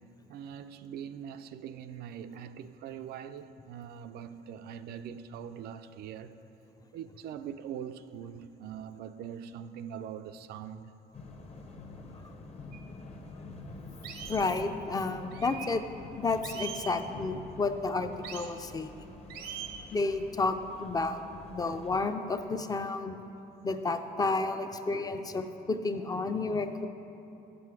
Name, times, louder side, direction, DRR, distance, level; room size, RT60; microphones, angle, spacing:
voice 1, 0.3-6.3 6.9-10.9 18.5-18.6 21.0-21.1 21.5-21.6, right 8 dB, 70° right, 0.4 m, -42 dB
sound 1, 11.1-22.1, left 3 dB, 40° left, 0.8 m, -47 dB
sound 2, 12.7-12.8 13.4-13.5 14.0-14.5 15.3-15.7 16.4-17.0 18.2-18.5 19.3-19.9, right 8 dB, 85° right, 0.8 m, -41 dB
voice 2, 14.3-15.8 16.2-18.9 19.9-21.2 21.5-23.2 23.6-26.9, left 3 dB, 20° left, 0.4 m, -31 dB
7.6 x 7.5 x 4.7 m
cardioid pair, 110°, 17 cm